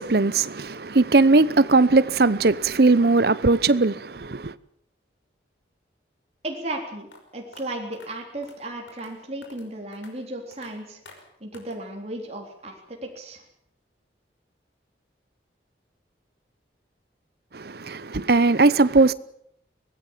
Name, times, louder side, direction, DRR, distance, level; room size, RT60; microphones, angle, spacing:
voice 1, 0.0-4.5 17.5-19.1, right 3 dB, 55° right, 0.8 m, -19 dB
voice 2, 6.4-7.1 7.3-11.0 11.4-13.4, right 1 dB, 35° right, 3.7 m, -35 dB
sound 1, 7.1-7.2 7.5-7.6 7.9-8.1 8.4-8.6 8.9-9.1 9.4-9.7 9.9-10.1 10.5-10.7 11.1-11.2 11.5-11.8, left 3 dB, 90° left, 5.7 m, -48 dB
24.0 x 18.0 x 7.4 m
head